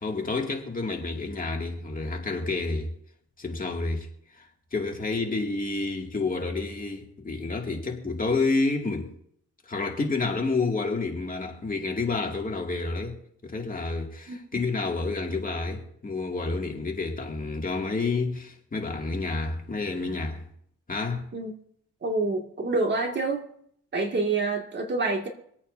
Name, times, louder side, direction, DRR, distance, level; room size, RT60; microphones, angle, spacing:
voice 1, 0.0-2.9 3.4-4.1 4.3-4.5 4.7-9.1 9.7-13.2 13.4-20.5 20.9-21.3, left 3 dB, 30° left, 2.3 m, -29 dB
voice 2, 14.3-14.6 21.3-21.5 22.0-23.4 23.9-25.3, right 3 dB, 35° right, 2.1 m, -27 dB
25.5 x 8.6 x 2.7 m
cardioid pair, 90°, 30 cm